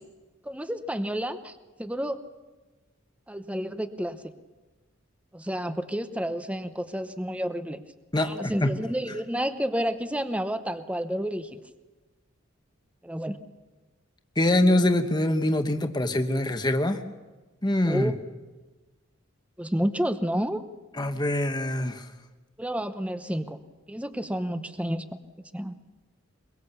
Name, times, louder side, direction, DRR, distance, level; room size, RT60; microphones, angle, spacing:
voice 1, 0.4-2.2 3.3-4.2 5.3-7.8 8.2-11.6 13.0-13.4 17.8-18.2 19.6-20.6 22.6-23.6 23.9-25.1 25.5-25.8, equal, 5° right, 10 dB, 0.8 m, -30 dB
voice 2, 8.1-8.7 14.4-17.0 17.6-18.1 21.0-22.1, left 1 dB, 20° left, 7 dB, 1.2 m, -24 dB
23.0 x 23.0 x 6.9 m, 1.2 s
head